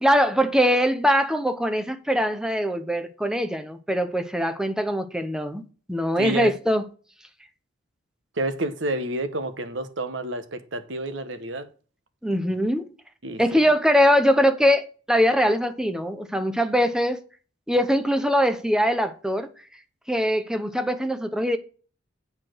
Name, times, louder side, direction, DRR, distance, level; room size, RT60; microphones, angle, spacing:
voice 1, 0.0-5.6 5.9-6.8 12.2-12.9 13.4-17.2 17.7-19.5 20.1-21.6, equal, 5° right, 0.8 m, -22 dB
voice 2, 6.2-6.5 8.4-11.7 13.2-13.7, right 2 dB, 70° right, 1.2 m, -29 dB
8.3 x 4.6 x 6.3 m
head